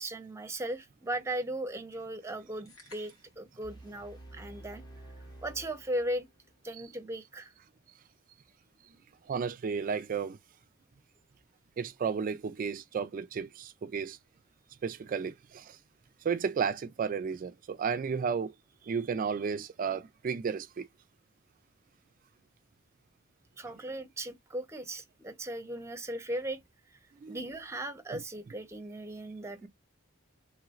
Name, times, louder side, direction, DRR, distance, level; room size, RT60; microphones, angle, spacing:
voice 1, 0.0-4.8 5.4-6.3 6.6-7.5 23.6-26.6 27.3-29.7, right 1 dB, 15° right, 0.7 m, -37 dB
sound 1, 2.7-3.5, left 3 dB, 85° left, 1.5 m, -55 dB
sound 2, 3.6-6.6, right 2 dB, 20° left, 0.9 m, -50 dB
voice 2, 9.3-10.4 11.8-14.2 14.8-15.8 16.2-18.5 18.8-20.9 27.2-27.4 28.1-28.2, right 6 dB, 40° right, 0.3 m, -33 dB
3.1 x 3.0 x 2.4 m
head